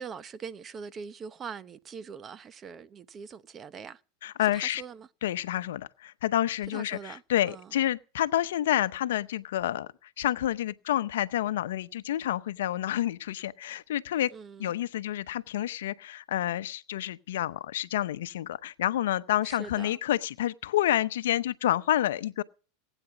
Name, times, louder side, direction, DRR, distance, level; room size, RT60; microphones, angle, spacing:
voice 1, 0.0-4.0 4.4-5.1 6.7-7.2 7.5-7.7 14.3-14.7 19.4-20.0, right 6 dB, 30° right, 0.9 m, -42 dB
voice 2, 4.2-4.8 5.2-9.9 10.2-14.3 14.6-22.4, left 13 dB, 75° left, 0.7 m, -29 dB
19.5 x 9.1 x 6.0 m
hypercardioid pair, 100°, 0 cm